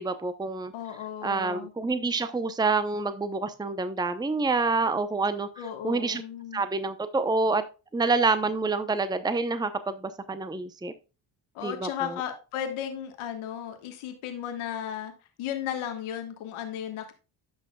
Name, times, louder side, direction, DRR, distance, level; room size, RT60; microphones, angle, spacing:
voice 1, 0.0-0.7 1.2-5.5 5.8-6.2 6.5-7.6 7.9-10.9 11.6-12.2, right 3 dB, 10° right, 11 dB, 0.7 m, -27 dB
voice 2, 0.7-1.7 5.6-6.6 11.5-15.1 15.4-17.1, left 9 dB, 80° left, 6 dB, 1.5 m, -35 dB
10.5 x 6.1 x 2.3 m, 0.30 s
supercardioid pair, 70°, 48 cm